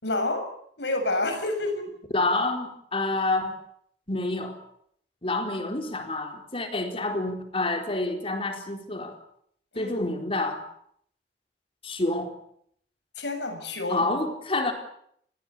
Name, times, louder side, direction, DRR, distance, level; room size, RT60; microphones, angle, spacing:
voice 1, 0.0-0.5 0.8-1.9 9.7-10.0 13.2-14.0, left 2 dB, 80° left, 7 dB, 7.1 m, -28 dB
voice 2, 2.1-3.5 4.1-4.6 5.2-9.2 9.8-10.6 11.8-12.3 13.9-14.7, left 2 dB, 35° left, 4 dB, 4.2 m, -28 dB
29.0 x 20.5 x 8.4 m, 0.69 s
head